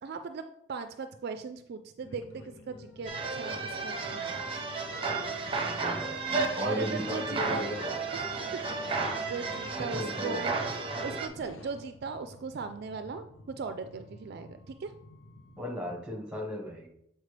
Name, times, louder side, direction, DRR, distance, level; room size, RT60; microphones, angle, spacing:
voice 1, 0.0-4.4 6.3-7.7 8.1-10.5 11.0-14.9, right 5 dB, 55° right, 8 dB, 0.4 m, -39 dB
sound 1, 2.0-15.6, left 2 dB, 90° left, 0.7 m, -51 dB
sound 2, 3.1-11.3, right 4 dB, 30° right, 0.7 m, -33 dB
voice 2, 5.6-6.2 6.6-7.8 9.8-10.4 15.6-16.9, left 1 dB, 5° right, 0 dB, 1.4 m, -36 dB
8.0 x 4.4 x 3.3 m, 0.77 s
head